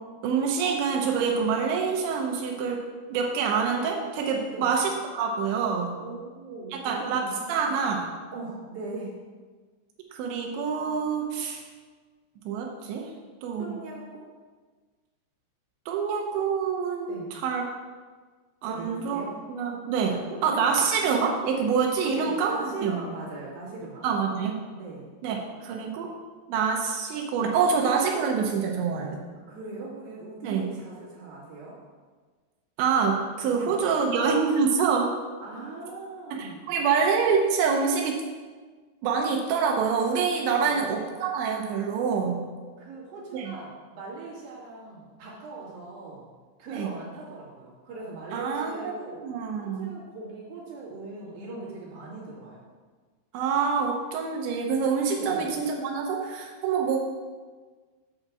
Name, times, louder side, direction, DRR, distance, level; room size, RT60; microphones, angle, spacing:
voice 1, 0.2-2.8 3.1-6.0 6.8-8.0 10.1-11.6 12.5-13.1 13.4-13.7 15.9-17.6 18.6-19.2 19.5-23.0 24.0-24.6 25.2-26.1 26.5-29.2 30.4-30.7 32.8-35.1 36.4-38.2 39.0-42.5 43.3-43.5 46.7-46.9 48.3-48.8 49.2-49.9 53.3-57.0, right 5 dB, 90° right, 1 dB, 3.2 m, -26 dB
voice 2, 6.0-7.4 8.3-9.2 13.6-14.3 17.1-17.3 18.6-19.3 20.0-20.7 22.1-24.1 24.8-25.1 29.5-31.8 33.5-33.8 35.4-36.6 40.6-40.9 42.8-46.3 46.6-49.2 49.6-52.7 55.2-55.5, right 3 dB, 55° right, -6 dB, 3.8 m, -40 dB
7.3 x 5.4 x 7.2 m, 1.4 s
omnidirectional pair, 5.1 m